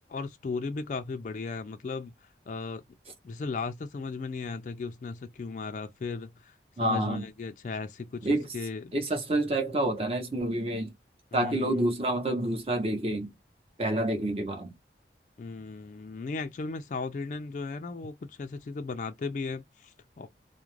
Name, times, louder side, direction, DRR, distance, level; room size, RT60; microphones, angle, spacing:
voice 1, 0.1-2.8 3.2-6.5 6.8-8.3 8.5-8.9 11.3-11.9 15.4-20.3, left 4 dB, 45° left, 0.3 m, -36 dB
voice 2, 6.8-7.2 8.2-8.5 8.9-10.9 11.3-13.3 13.8-14.7, right 1 dB, 35° right, 0.8 m, -28 dB
2.4 x 2.0 x 3.0 m
head